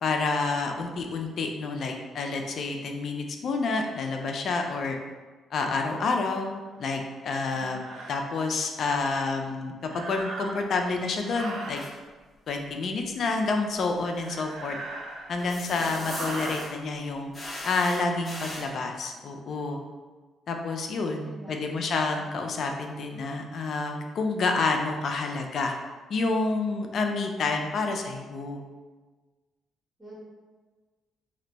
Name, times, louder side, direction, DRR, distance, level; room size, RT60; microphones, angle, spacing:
voice 1, 0.0-5.0 5.5-7.8 8.1-11.8 12.5-14.8 15.3-17.3 17.6-19.8 20.5-25.7 26.1-28.6, left 3 dB, 60° left, 3 dB, 0.3 m, -29 dB
sound 1, 6.8-6.9 7.7-8.2 9.8-10.8 11.2-11.9 14.0-15.5 15.9-16.6, right 2 dB, 70° right, 0.4 m, -38 dB
sound 2, 11.7-11.9 14.2-14.3 15.4-16.8 17.3-18.7, left 1 dB, 35° left, 0.7 m, -39 dB
voice 2, 21.2-22.3 30.0-30.2, right 2 dB, 10° right, -8 dB, 1.3 m, -49 dB
2.5 x 2.1 x 3.9 m, 1.4 s
cardioid pair, 90°, 0 cm